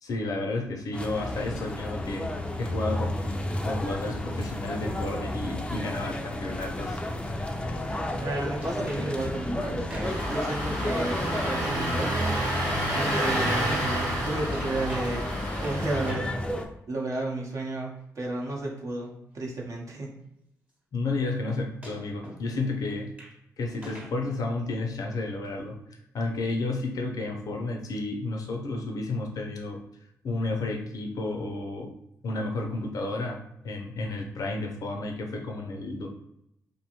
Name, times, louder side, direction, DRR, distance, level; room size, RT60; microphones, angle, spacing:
voice 1, 0.0-2.3 2.6-7.0 20.9-23.1 23.6-25.8 26.1-29.8 30.2-31.9 32.2-36.1, left 2 dB, 70° left, 2 dB, 0.5 m, -32 dB
sound 1, 0.9-16.6, left 1 dB, 15° left, 0.4 m, -32 dB
voice 2, 8.2-12.3 12.9-15.2 15.6-16.3 16.9-20.1, right 2 dB, 55° right, -1 dB, 0.8 m, -32 dB
sound 2, 8.6-9.1 9.7-10.4 14.5-15.1 15.6-16.4 18.2-18.3 19.5-19.6 21.8-22.5 22.9-23.4 23.7-24.2 24.9-25.0, right 1 dB, 20° right, 0.9 m, -45 dB
Engine starting, 10.0-16.1, right 1 dB, 90° right, 1.1 m, -29 dB
2.6 x 2.1 x 2.8 m, 0.80 s
cardioid pair, 60°, 6 cm